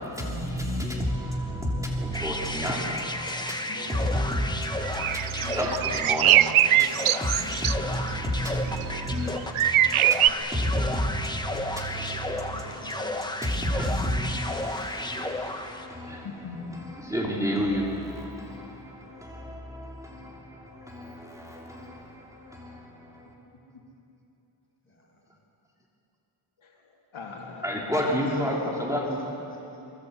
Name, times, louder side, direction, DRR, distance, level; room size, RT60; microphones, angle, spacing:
voice 1, 0.0-23.3 27.6-29.3, equal, 5° right, -3 dB, 3.1 m, -31 dB
sound 1, 2.1-16.0, left 1 dB, 10° left, 1.2 m, -33 dB
voice 2, 3.7-4.0 5.4-5.7 6.3-10.6 11.9-13.1 24.8-25.4 28.2-29.8, left 1 dB, 25° left, -2 dB, 6.8 m, -45 dB
sound 2, 4.9-7.7 8.7-9.0 9.5-10.3, right 12 dB, 85° right, 0.7 m, -22 dB
voice 3, 16.2-17.0 26.6-29.0, left 3 dB, 75° left, -1 dB, 3.0 m, -39 dB
24.5 x 24.0 x 8.1 m, 2.9 s
wide cardioid pair, 140°, 49 cm